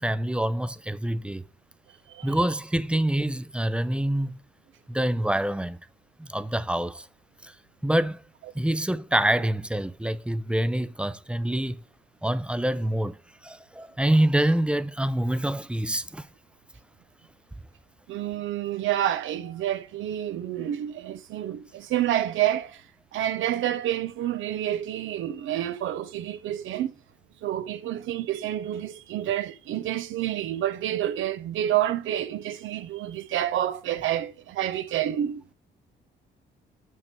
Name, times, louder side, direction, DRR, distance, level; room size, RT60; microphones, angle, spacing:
voice 1, 0.0-1.4 2.2-4.4 4.9-5.8 6.2-7.1 7.4-7.5 7.8-8.2 8.5-11.8 12.2-13.2 13.4-16.3, right 1 dB, 5° right, 0.4 m, -26 dB
voice 2, 2.1-2.4 18.1-22.8 23.1-26.9 27.4-35.4, right 12 dB, 80° right, 0.8 m, -28 dB
6.5 x 6.3 x 4.5 m
cardioid pair, 90°, 20 cm